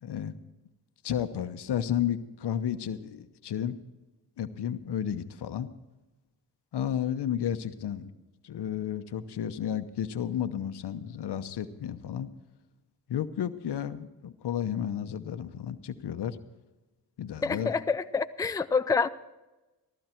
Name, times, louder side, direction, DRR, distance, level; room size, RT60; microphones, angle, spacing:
voice 1, 0.0-0.3 1.0-3.8 4.4-5.7 6.7-8.0 8.4-12.3 13.1-16.4 17.2-17.7, left 9 dB, 70° left, 11 dB, 1.0 m, -32 dB
voice 2, 17.4-19.1, left 5 dB, 10° left, 10 dB, 0.5 m, -27 dB
14.5 x 14.0 x 4.4 m, 1.1 s
cardioid pair, 60°, 41 cm